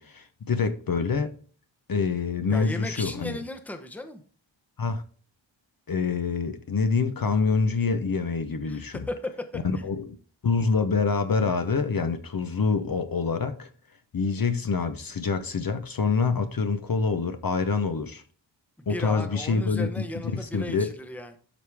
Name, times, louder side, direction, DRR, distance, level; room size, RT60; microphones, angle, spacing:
voice 1, 0.0-1.4 1.9-3.4 4.8-5.0 5.9-9.0 9.6-10.2 10.4-13.7 14.1-18.2 18.9-20.0 20.3-20.9, left 4 dB, 45° left, 0.8 m, -26 dB
voice 2, 2.5-4.2 8.7-9.3 9.7-9.9 18.8-21.4, left 1 dB, 5° left, 0.9 m, -36 dB
12.0 x 4.9 x 3.4 m
wide cardioid pair, 135°, 47 cm